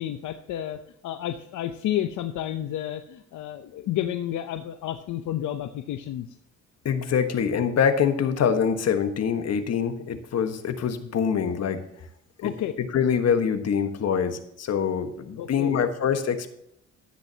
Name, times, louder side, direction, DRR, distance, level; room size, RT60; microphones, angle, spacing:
voice 1, 0.0-6.3 12.4-12.7 15.4-15.8, left 12 dB, 80° left, 8 dB, 0.8 m, -31 dB
voice 2, 6.8-11.8 12.4-16.5, left 7 dB, 55° left, 7 dB, 1.4 m, -25 dB
11.5 x 10.5 x 2.9 m, 0.76 s
cardioid pair, 90°, 30 cm